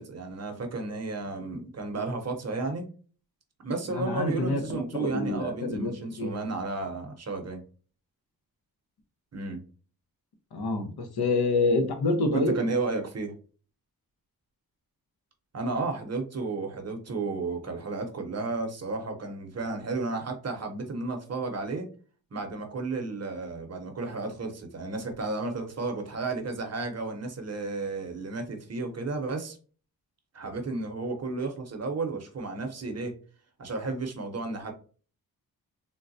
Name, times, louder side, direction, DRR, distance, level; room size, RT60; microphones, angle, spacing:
voice 1, 0.0-2.8 3.6-7.6 9.3-9.6 12.3-13.3 15.5-21.9 22.3-29.6 30.3-33.1 33.6-34.7, right 3 dB, 45° right, 0.7 m, -33 dB
voice 2, 3.9-6.4 10.5-12.7, left 2 dB, 85° left, 0.8 m, -27 dB
3.8 x 2.1 x 2.6 m
wide cardioid pair, 140°, 37 cm